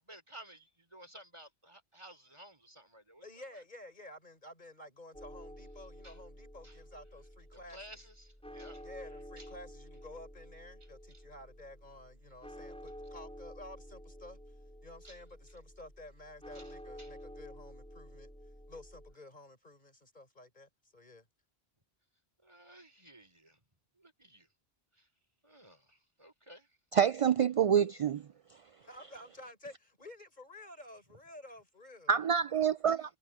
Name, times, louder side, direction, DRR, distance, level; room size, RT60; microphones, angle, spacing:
voice 1, 0.0-3.2 6.0-6.2 6.6-6.8 7.5-8.8 9.4-9.5 11.1-11.2 15.0-15.2 16.5-16.7 17.0-17.1 22.4-23.6 24.0-24.5 25.0-25.1 25.4-26.7, right 1 dB, 30° right, 4.5 m, -54 dB
voice 2, 3.2-8.0 8.8-14.4 14.8-18.3 18.7-21.3 28.8-32.1, left 1 dB, 45° left, 5.0 m, -52 dB
sound 1, 5.1-19.1, equal, 5° left, 4.1 m, -51 dB
voice 3, 26.9-28.2 32.1-33.2, right 8 dB, 50° right, 0.4 m, -27 dB
omnidirectional pair, 1.0 m